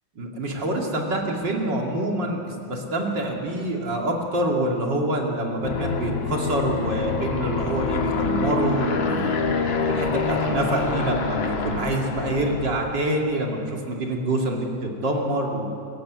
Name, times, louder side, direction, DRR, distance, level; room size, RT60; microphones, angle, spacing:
voice 1, 0.1-9.4 9.9-15.7, right 1 dB, 60° right, 0 dB, 3.2 m, -26 dB
Aircraft, 5.6-13.0, left 5 dB, 85° left, 2.4 m, -26 dB
23.5 x 14.5 x 9.6 m, 2.7 s
omnidirectional pair, 2.2 m